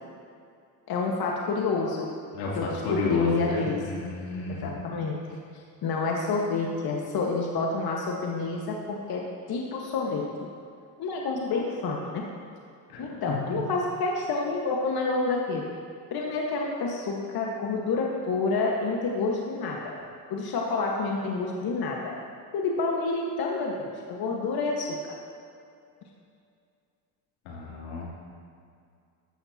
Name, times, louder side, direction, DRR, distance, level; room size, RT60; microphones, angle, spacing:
voice 1, 0.9-2.1 2.5-3.8 4.5-9.2 9.5-10.2 11.0-12.3 13.0-15.7 16.1-19.9 20.3-22.0 22.5-24.9, left 3 dB, 45° left, -1 dB, 1.6 m, -28 dB
voice 2, 2.3-4.7 12.9-13.6 27.4-28.1, left 3 dB, 80° left, -4 dB, 3.2 m, -32 dB
13.5 x 12.5 x 2.9 m, 2.4 s
supercardioid pair, 90°, 49 cm